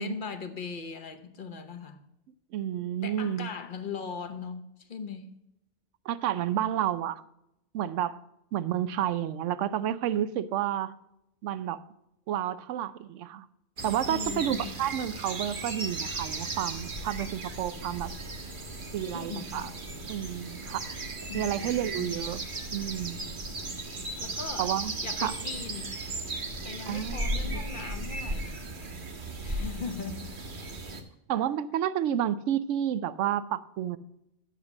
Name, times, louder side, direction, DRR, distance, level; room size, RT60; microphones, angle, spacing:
voice 1, 0.0-2.0 3.0-5.4 14.0-14.7 19.1-19.7 21.3-22.1 24.2-24.7 25.0-25.9 26.6-28.6 29.4-30.4, left 5 dB, 45° left, 1.0 m, -39 dB
voice 2, 2.5-3.5 6.1-7.2 7.7-8.2 8.5-10.9 11.4-11.9 12.3-13.5 13.8-18.1 18.9-19.7 20.1-20.9 21.3-22.4 22.7-23.3 24.6-24.9 25.2-25.3 26.9-27.2 27.5-27.6 31.3-34.0, right 10 dB, 85° right, 0.9 m, -30 dB
sound 1, 13.8-31.0, right 2 dB, 45° right, 1.2 m, -36 dB
8.1 x 6.5 x 7.0 m
omnidirectional pair, 1.2 m